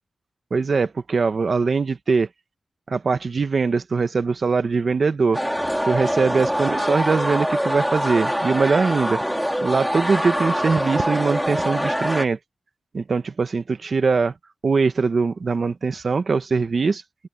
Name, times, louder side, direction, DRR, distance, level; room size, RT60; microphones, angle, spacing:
voice 1, 0.5-2.3 2.9-5.4 5.8-9.2 9.6-12.4 12.9-14.3 14.6-17.3, right 4 dB, 50° right, 1.4 m, -22 dB
sound 1, 5.3-12.2, equal, ahead, 3.2 m, -24 dB
wide cardioid pair, 130°, 0 cm